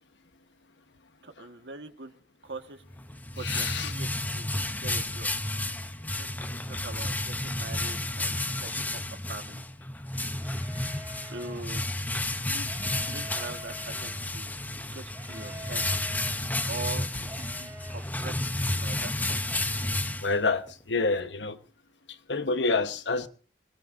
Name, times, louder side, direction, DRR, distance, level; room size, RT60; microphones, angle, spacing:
voice 1, 1.2-2.1 2.4-2.8 3.3-4.1 4.3-4.5 4.8-5.3 6.2-9.6 11.2-11.8 12.4-14.5 14.9-15.9 16.7-18.5 18.8-19.5, right 3 dB, 75° right, 1.6 m, -43 dB
sound 1, 2.9-20.7, left 2 dB, 10° left, 0.8 m, -32 dB
voice 2, 3.4-3.9 20.2-21.6 22.3-23.3, left 3 dB, 90° left, 1.2 m, -27 dB
sound 2, 10.3-11.6 12.6-14.3 15.1-16.4 17.2-18.1, right 1 dB, 10° right, 6.7 m, -47 dB
26.0 x 19.5 x 2.6 m
head